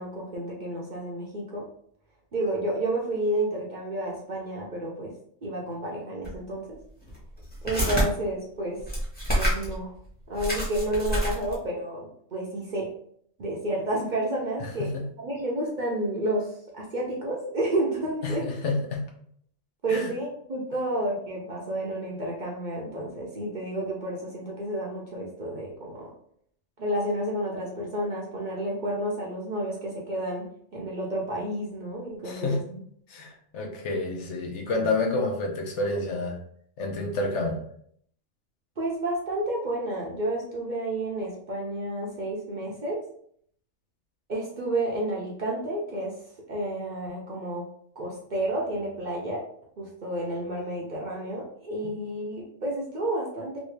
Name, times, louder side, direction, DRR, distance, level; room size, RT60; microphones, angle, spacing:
voice 1, 0.0-1.7 2.3-5.1 5.4-6.8 7.6-8.8 9.4-9.9 10.3-12.9 13.4-18.5 19.8-26.1 26.8-32.8 38.8-43.0 44.3-46.2 46.5-47.6 48.0-49.4 49.8-53.6, right 1 dB, 45° right, -3 dB, 0.7 m, -30 dB
sound 1, 6.2-6.4 7.0-8.1 8.8-9.8 10.1-10.2 10.4-11.7, equal, 10° left, 0.9 m, -27 dB
voice 2, 18.2-19.1 19.9-20.1 32.2-32.6 33.1-36.4 36.8-37.6, left 2 dB, 70° left, 1 dB, 1.0 m, -29 dB
3.1 x 2.7 x 3.1 m, 0.64 s
omnidirectional pair, 1.3 m